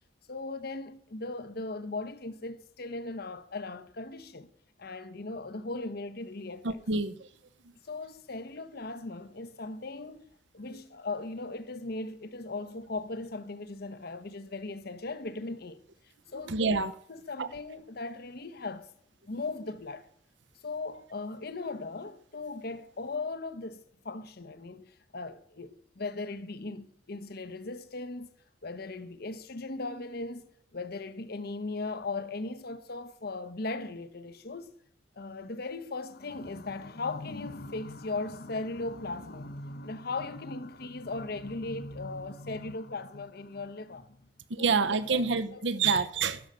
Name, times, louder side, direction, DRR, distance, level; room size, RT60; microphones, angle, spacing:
voice 1, 0.3-4.5 4.8-6.8 7.9-15.8 16.3-16.6 17.1-18.9 19.2-20.1 20.6-28.3 28.6-30.5 30.7-34.7 35.2-44.3 44.6-45.6, left 3 dB, 60° left, 0.9 m, -38 dB
voice 2, 6.6-7.3 10.7-10.8 16.5-17.0 17.4-17.5 44.5-46.4, right 4 dB, 75° right, 0.8 m, -27 dB
12.0 x 6.3 x 6.7 m
head